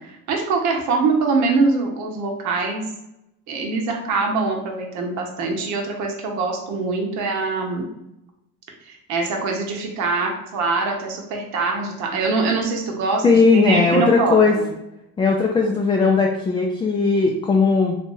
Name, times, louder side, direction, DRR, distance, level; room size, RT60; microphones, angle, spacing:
voice 1, 0.0-2.8 3.5-7.8 8.9-14.7, right 3 dB, 65° right, 1 dB, 0.9 m, -23 dB
voice 2, 13.2-14.6 15.2-18.0, left 4 dB, 15° left, 1 dB, 0.4 m, -17 dB
2.6 x 2.5 x 3.9 m, 0.88 s
supercardioid pair, 85°, 31 cm